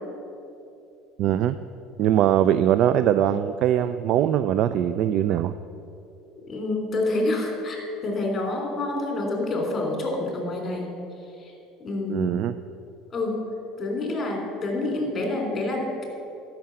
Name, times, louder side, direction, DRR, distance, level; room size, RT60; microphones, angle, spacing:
voice 1, 1.2-1.6 2.0-5.6 12.1-12.6, right 10 dB, 60° right, 12 dB, 0.3 m, -21 dB
voice 2, 6.4-10.9 11.3-11.5 11.8-12.4 13.1-13.4 13.8-16.1, left 2 dB, 30° left, 1 dB, 3.1 m, -28 dB
13.0 x 5.8 x 7.6 m, 2.8 s
supercardioid pair, 110°, 0 cm